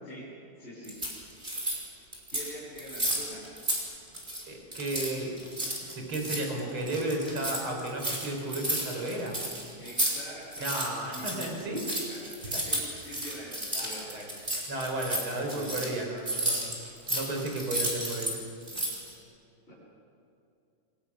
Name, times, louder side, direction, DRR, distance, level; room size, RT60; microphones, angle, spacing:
voice 1, 0.6-1.0 2.3-3.4 9.8-11.8 12.1-12.2 12.4-14.1 14.4-14.6 15.5-15.6 19.7-19.8, equal, 10° left, -9 dB, 7.9 m, -45 dB
sound 1, 0.8-1.8 2.1-2.5 2.8-4.4 4.7-10.2 10.4-18.4 18.6-19.1, right 1 dB, 10° right, 4.6 m, -32 dB
voice 2, 4.5-5.3 5.8-9.4 10.6-11.8 12.4-12.7 13.7-14.3 14.7-18.3, right 1 dB, 25° right, 1 dB, 4.7 m, -34 dB
29.5 x 23.5 x 6.3 m, 2.6 s
omnidirectional pair, 5.6 m